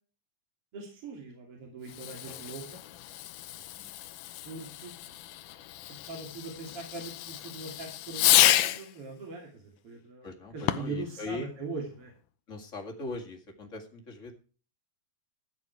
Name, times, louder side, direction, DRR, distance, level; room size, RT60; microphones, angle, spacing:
voice 1, 0.7-2.8 4.4-5.2 6.1-12.1, right 3 dB, 45° right, 1 dB, 3.4 m, -41 dB
Fireworks, 1.8-8.9 10.6-11.1, left 14 dB, 85° left, 2.3 m, -30 dB
voice 2, 10.2-11.5 12.5-14.3, left 3 dB, 25° left, 1 dB, 2.0 m, -40 dB
13.0 x 9.1 x 4.7 m, 0.37 s
omnidirectional pair, 3.8 m